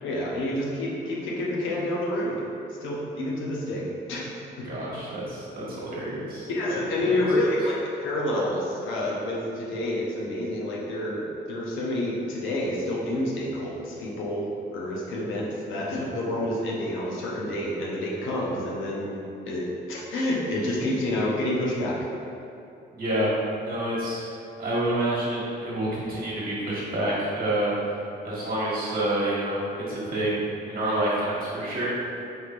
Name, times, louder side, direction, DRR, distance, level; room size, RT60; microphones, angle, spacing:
voice 1, 0.0-2.4 2.8-4.7 6.5-19.2 19.5-22.0, left 1 dB, 80° left, -4 dB, 0.8 m, -28 dB
voice 2, 4.6-6.8 7.0-7.1 22.9-23.3 23.6-24.2 24.6-27.7 28.2-29.6 29.9-30.4 30.7-31.9, right 1 dB, 50° right, -7 dB, 1.4 m, -28 dB
4.9 x 3.2 x 2.5 m, 2.7 s
cardioid pair, 90°, 20 cm